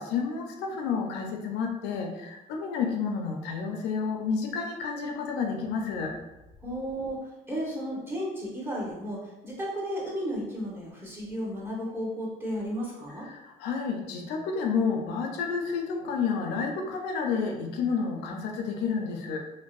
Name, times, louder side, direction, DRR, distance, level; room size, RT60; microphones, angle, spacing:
voice 1, 0.0-6.1 13.2-19.4, left 5 dB, 85° left, 2 dB, 0.4 m, -30 dB
voice 2, 6.6-7.2 7.5-13.3, equal, 15° right, -5 dB, 0.8 m, -33 dB
2.6 x 2.0 x 2.3 m, 1.0 s
cardioid pair, 110°, 17 cm